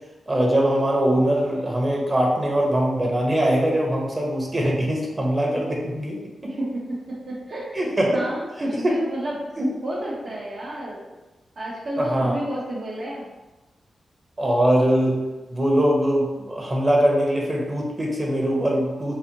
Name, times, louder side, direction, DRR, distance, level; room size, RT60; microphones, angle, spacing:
voice 1, 0.3-6.5 7.7-8.2 8.6-8.9 9.6-9.7 12.0-12.3 14.4-15.2 15.5-19.2, equal, 30° right, -1 dB, 0.9 m, -22 dB
voice 2, 6.5-9.4 9.8-11.0 11.6-13.3, right 1 dB, 60° right, -6 dB, 0.8 m, -31 dB
4.0 x 2.6 x 2.9 m, 1.1 s
cardioid pair, 85°, 0 cm